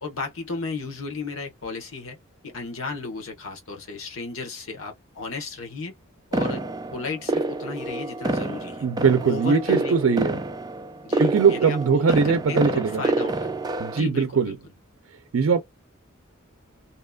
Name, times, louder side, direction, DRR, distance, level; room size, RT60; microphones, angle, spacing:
voice 1, 0.0-2.2 2.4-5.9 6.3-6.6 6.9-8.9 9.2-10.0 11.0-14.6, left 3 dB, 85° left, 1.1 m, -34 dB
sound 1, 6.3-14.0, right 2 dB, 20° right, 0.3 m, -28 dB
voice 2, 8.8-10.4 11.2-13.0 13.8-14.6 15.3-15.6, right 5 dB, 85° right, 0.4 m, -21 dB
2.8 x 2.2 x 2.3 m
head